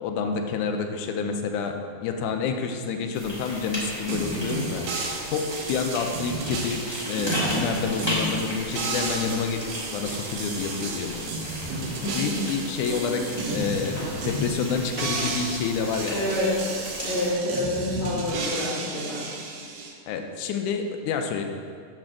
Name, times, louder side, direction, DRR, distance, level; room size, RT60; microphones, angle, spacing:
voice 1, 0.0-1.8 2.0-4.9 5.3-9.7 9.9-11.3 12.1-16.2 20.1-21.4, left 5 dB, 85° left, 4 dB, 2.1 m, -28 dB
sound 1, 3.1-17.3, equal, 15° left, 1.1 m, -35 dB
sound 2, 4.1-19.9, right 3 dB, 80° right, 2.4 m, -33 dB
voice 2, 12.0-12.5 12.9-13.3 16.1-16.5 17.0-19.2, left 1 dB, 65° left, -12 dB, 3.4 m, -28 dB
8.6 x 4.3 x 6.1 m, 2.1 s
omnidirectional pair, 3.6 m